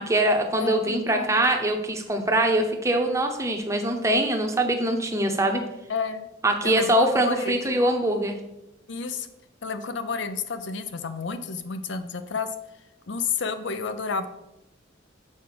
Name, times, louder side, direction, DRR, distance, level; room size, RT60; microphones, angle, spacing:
voice 1, 0.0-5.6 6.4-8.4, right 1 dB, 15° right, 3 dB, 0.8 m, -23 dB
voice 2, 0.6-1.4 5.9-6.3 6.6-7.8 8.9-9.3 9.6-12.5 13.1-14.3, left 5 dB, 70° left, 10 dB, 0.6 m, -31 dB
6.5 x 4.8 x 6.0 m, 0.90 s
head